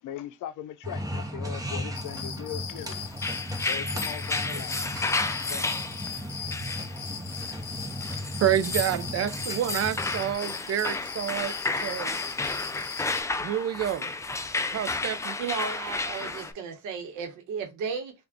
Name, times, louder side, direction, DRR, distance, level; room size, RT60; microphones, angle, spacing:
voice 1, 0.0-3.1 3.6-5.0 5.5-5.7 5.9-6.5 7.0-7.1, left 11 dB, 80° left, 0.5 m, -40 dB
sound 1, 0.8-10.3, equal, 10° right, 0.9 m, -36 dB
sound 2, 1.9-13.2, left 7 dB, 55° left, 1.1 m, -39 dB
sound 3, 3.1-16.5, left 3 dB, 10° left, 0.3 m, -32 dB
voice 2, 8.4-12.2 13.4-14.1 14.7-15.4, right 10 dB, 50° right, 0.5 m, -28 dB
voice 3, 15.4-18.1, right 6 dB, 90° right, 1.0 m, -34 dB
3.5 x 2.4 x 3.6 m
cardioid pair, 90°, 30 cm